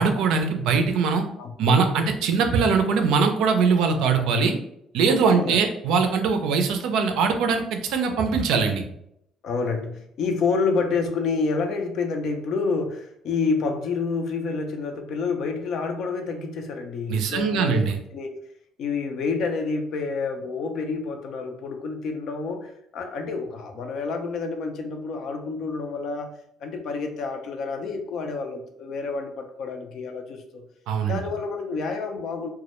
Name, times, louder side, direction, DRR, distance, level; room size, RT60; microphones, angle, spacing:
voice 1, 0.0-1.3 1.6-4.6 4.9-8.8 17.1-18.0 30.9-31.2, right 5 dB, 75° right, 6 dB, 0.4 m, -21 dB
voice 2, 1.4-1.8 5.2-5.6 9.4-17.9 18.1-18.4 18.8-26.3 26.6-30.6 31.1-32.5, left 4 dB, 65° left, 6 dB, 0.4 m, -28 dB
2.1 x 2.0 x 2.9 m, 0.75 s
supercardioid pair, 75°, 0 cm